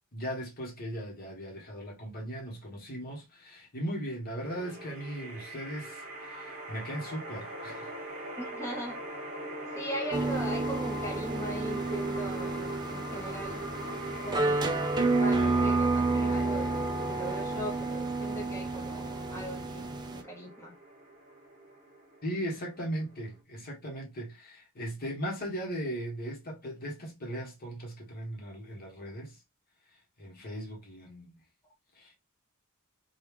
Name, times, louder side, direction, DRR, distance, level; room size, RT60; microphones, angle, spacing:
voice 1, 0.1-8.0 22.2-29.4 30.2-31.3 31.9-32.2, equal, 45° left, 1.1 m, -38 dB
sound 1, 4.4-23.4, right 1 dB, 40° right, 1.1 m, -41 dB
voice 2, 8.4-9.0 9.7-13.6 14.2-14.8 15.1-19.8 20.1-20.7, right 1 dB, 15° left, 0.9 m, -39 dB
sound 2, 10.1-20.2, right 3 dB, 20° right, 0.4 m, -30 dB
3.1 x 2.3 x 3.3 m
head